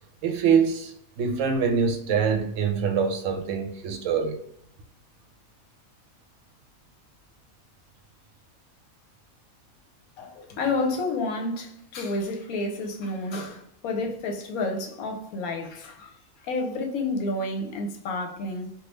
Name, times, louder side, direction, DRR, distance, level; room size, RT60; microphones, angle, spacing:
voice 1, 0.2-0.9 1.2-4.4, right 6 dB, 70° right, 0.9 m, -24 dB
voice 2, 10.2-18.7, left 2 dB, 85° left, 1.1 m, -30 dB
3.4 x 2.3 x 3.1 m
omnidirectional pair, 1.5 m